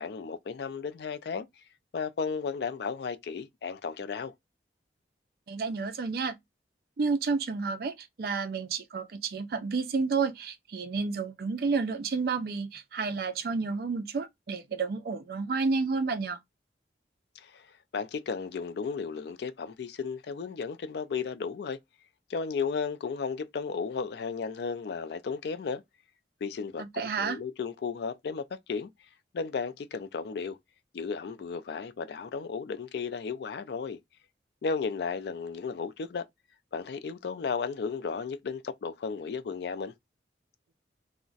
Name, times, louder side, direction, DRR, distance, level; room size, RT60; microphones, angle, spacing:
voice 1, 0.0-1.6 1.9-4.3 17.4-21.8 22.3-25.8 26.4-28.9 29.3-30.6 30.9-34.0 34.6-36.2 36.7-39.9, left 5 dB, 65° left, 0.3 m, -34 dB
voice 2, 5.5-6.4 7.0-16.4 26.8-27.4, right 4 dB, 55° right, 0.4 m, -30 dB
2.4 x 2.1 x 3.8 m
head